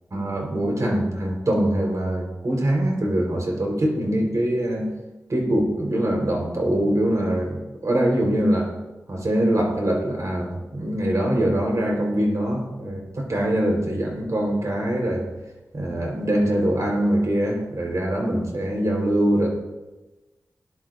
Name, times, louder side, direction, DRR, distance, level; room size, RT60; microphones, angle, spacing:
voice 1, 0.1-4.8 5.3-8.7 9.1-15.2 15.7-19.5, right 1 dB, 55° right, 0 dB, 4.0 m, -23 dB
19.5 x 10.5 x 2.6 m, 1.1 s
wide cardioid pair, 65°, 7 cm